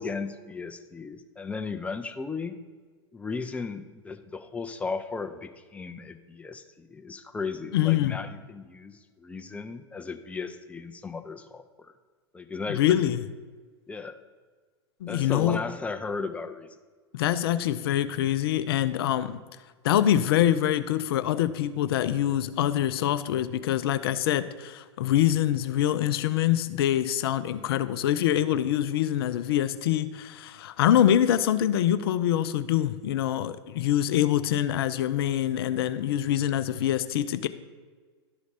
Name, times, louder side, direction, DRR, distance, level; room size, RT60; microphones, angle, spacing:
voice 1, 0.0-2.5 3.1-11.9 12.3-13.1 13.9-14.2 15.1-16.7, left 4 dB, 10° left, 8 dB, 0.5 m, -35 dB
voice 2, 7.7-8.2 12.7-13.3 15.0-15.6 17.1-19.4 19.8-37.5, left 11 dB, 60° left, 13 dB, 0.5 m, -25 dB
12.0 x 4.0 x 5.0 m, 1.5 s
figure-of-eight pair, 95°, 14 cm